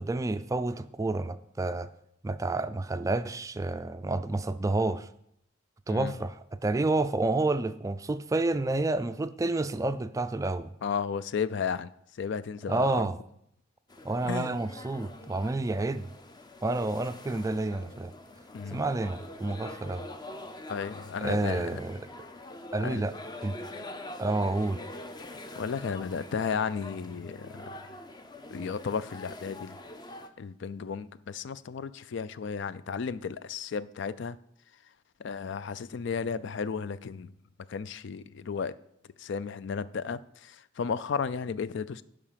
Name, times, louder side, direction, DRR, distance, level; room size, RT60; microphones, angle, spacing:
voice 1, 0.0-1.9 2.2-5.1 5.9-10.7 12.7-13.2 14.0-16.1 16.6-18.1 18.7-20.1 21.2-22.1 22.7-23.1 23.4-23.6 24.2-24.8, right 2 dB, 15° right, 0.3 m, -29 dB
voice 2, 10.8-11.9 12.2-13.1 14.2-14.6 18.5-18.8 20.7-21.8 22.8-23.0 25.5-28.0 28.5-29.8 30.4-34.4 35.2-37.3 37.7-38.7 39.2-42.0, left 6 dB, 65° left, 0.4 m, -34 dB
sound 1, 13.9-30.3, left 2 dB, 20° left, 0.6 m, -45 dB
11.5 x 5.1 x 5.7 m
head